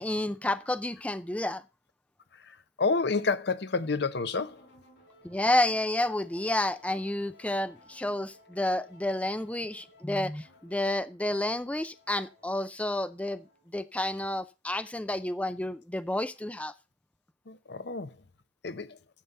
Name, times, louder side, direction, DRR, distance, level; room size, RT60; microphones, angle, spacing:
voice 1, 0.0-1.6 5.2-13.4 13.7-16.7, left 1 dB, 10° left, 0.4 m, -30 dB
voice 2, 2.8-4.6 17.5-18.1 18.6-19.0, left 4 dB, 65° left, 0.8 m, -29 dB
sound 1, 4.4-13.8, left 1 dB, 85° left, 4.8 m, -59 dB
10.0 x 7.4 x 5.4 m
head